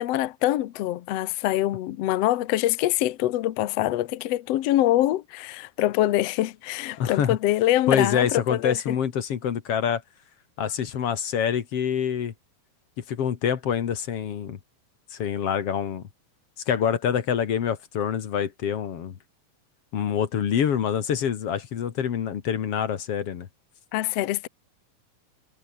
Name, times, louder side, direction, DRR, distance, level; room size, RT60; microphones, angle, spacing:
voice 1, 0.0-9.0 23.9-24.5, left 14 dB, 70° left, 1.5 m, -24 dB
voice 2, 7.0-7.4 7.9-10.0 10.6-12.3 13.1-14.6 15.1-16.0 16.7-19.2 19.9-23.5, left 8 dB, 50° left, 2.2 m, -26 dB
omnidirectional pair, 4.0 m